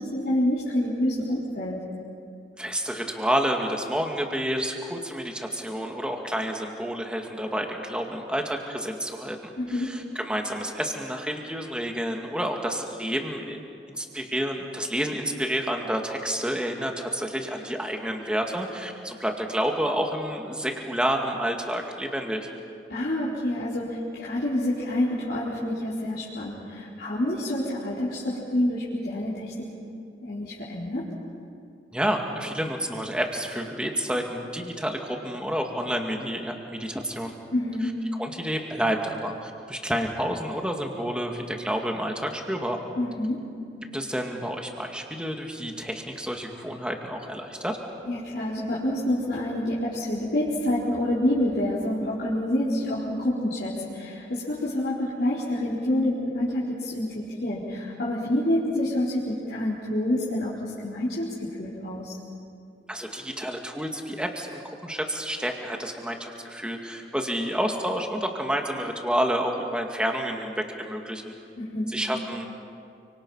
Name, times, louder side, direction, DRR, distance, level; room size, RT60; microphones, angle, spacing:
voice 1, 0.0-1.8 9.6-9.9 22.9-29.7 30.2-31.0 37.5-37.9 43.0-43.4 48.1-62.2 71.6-71.9, left 1 dB, 60° left, -9 dB, 4.2 m, -27 dB
voice 2, 2.6-13.6 13.9-22.5 31.9-37.3 38.2-42.8 43.9-47.8 62.9-71.3 71.9-72.5, equal, 5° right, 2 dB, 2.1 m, -29 dB
29.5 x 25.5 x 5.7 m, 2.5 s
head